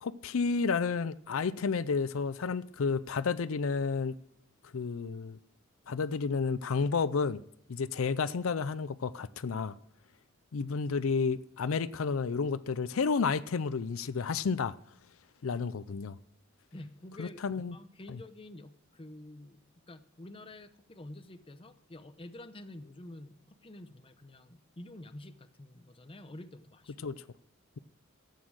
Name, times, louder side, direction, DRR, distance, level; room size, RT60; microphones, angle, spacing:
voice 1, 0.0-4.2 4.7-5.4 5.9-7.4 7.7-9.7 10.5-14.7 15.4-16.2 17.2-17.8 18.1-18.2 27.0-27.2, left 5 dB, 85° left, 0.5 m, -31 dB
voice 2, 16.7-17.4 17.7-19.6 19.9-27.1, left 1 dB, 25° left, 0.8 m, -48 dB
13.0 x 8.5 x 6.2 m
head